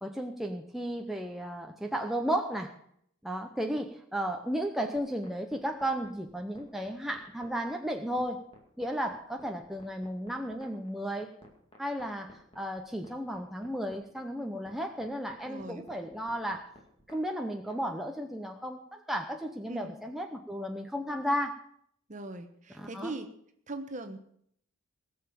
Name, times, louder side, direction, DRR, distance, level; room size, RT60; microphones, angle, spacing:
voice 1, 0.0-2.7 3.2-8.5 8.8-11.3 11.8-16.7 17.1-21.6 22.8-23.1, equal, ahead, 2 dB, 0.7 m, -34 dB
sound 1, 4.9-17.8, left 1 dB, 25° left, 2.2 m, -55 dB
voice 2, 15.4-15.9 19.7-19.9 22.1-23.3 23.7-24.2, right 2 dB, 35° right, 7 dB, 1.1 m, -40 dB
18.0 x 6.9 x 6.9 m, 0.67 s
head